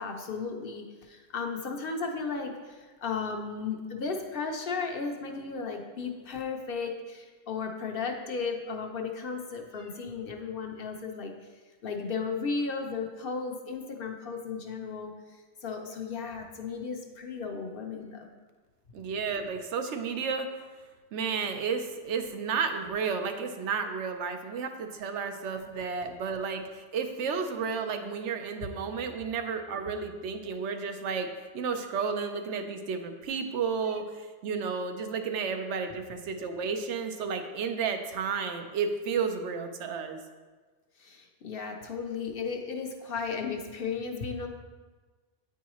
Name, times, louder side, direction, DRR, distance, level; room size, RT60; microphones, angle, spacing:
voice 1, 0.0-11.3 11.8-15.1 15.6-18.3 25.8-25.9 41.0-44.5, left 5 dB, 55° left, 3 dB, 0.8 m, -35 dB
voice 2, 18.9-20.5 21.1-31.3 31.5-40.2, right 5 dB, 80° right, 6 dB, 0.9 m, -32 dB
9.1 x 4.7 x 3.0 m, 1.4 s
omnidirectional pair, 1.2 m